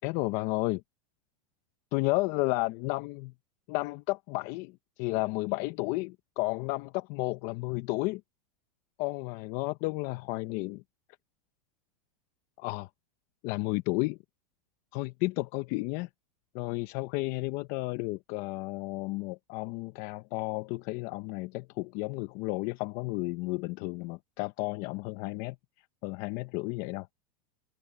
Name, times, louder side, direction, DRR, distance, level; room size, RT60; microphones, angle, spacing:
voice 1, 0.0-0.8 1.9-3.3 3.7-8.2 9.0-10.8 12.6-12.9 13.4-14.2 14.9-16.1 16.5-25.6 26.0-27.1, left 23 dB, 45° left, 0.8 m, -32 dB
supercardioid pair, 140°, 20 cm